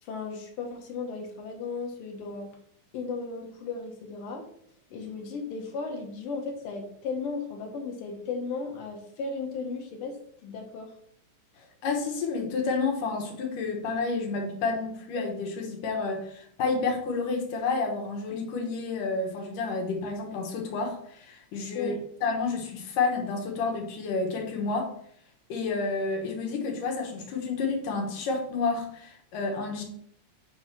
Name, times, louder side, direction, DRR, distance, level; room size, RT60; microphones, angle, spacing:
voice 1, 0.0-2.5 2.9-4.5 4.9-10.2 10.4-10.9 21.7-22.0, left 4 dB, 50° left, 1 dB, 2.0 m, -35 dB
voice 2, 11.8-21.9 22.2-24.9 25.5-29.8, left 4 dB, 80° left, 2 dB, 2.9 m, -30 dB
8.3 x 3.3 x 5.8 m, 0.66 s
omnidirectional pair, 3.7 m